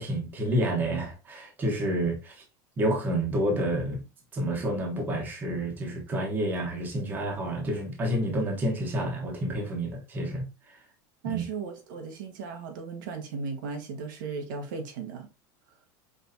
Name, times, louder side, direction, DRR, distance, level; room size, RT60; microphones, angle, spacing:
voice 1, 0.0-2.3 2.8-4.0 4.3-10.5 11.3-11.4, right 1 dB, 20° right, 1.1 m, -29 dB
voice 2, 11.2-15.3, right 5 dB, 85° right, 1.3 m, -36 dB
5.1 x 3.4 x 2.7 m
supercardioid pair, 175°, 10 cm